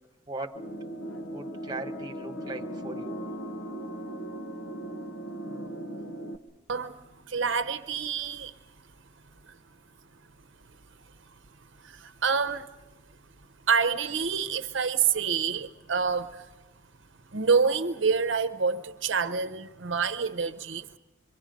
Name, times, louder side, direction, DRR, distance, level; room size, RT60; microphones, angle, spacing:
voice 1, 0.3-0.6 1.3-3.2, right 2 dB, 20° right, 3 dB, 1.4 m, -38 dB
sound 1, 0.5-6.4, right 1 dB, 75° left, 1.3 m, -38 dB
voice 2, 7.3-8.5 11.8-12.7 13.7-16.4 17.3-21.0, right 5 dB, 65° right, 10 dB, 0.8 m, -27 dB
26.5 x 24.0 x 5.2 m, 1.0 s
head